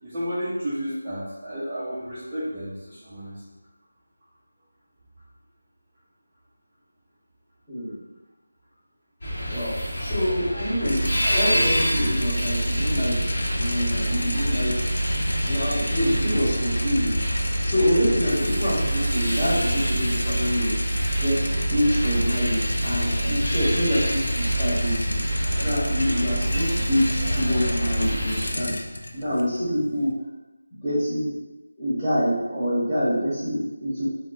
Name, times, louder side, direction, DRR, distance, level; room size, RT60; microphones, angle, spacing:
voice 1, 0.0-3.4, equal, 15° right, -14 dB, 0.5 m, -32 dB
sound 1, 9.2-28.5, equal, 40° left, 0.8 m, -29 dB
voice 2, 9.5-13.1 13.5-14.7 15.4-17.2 17.6-20.7 21.2-25.2 25.6-28.7 29.1-30.1 30.8-31.4 31.8-34.1, equal, ahead, -22 dB, 1.0 m, -26 dB
sound 2, 10.8-30.1, right 1 dB, 75° left, 0.3 m, -27 dB
2.2 x 2.0 x 3.6 m, 1.1 s
figure-of-eight pair, 175°, 0 cm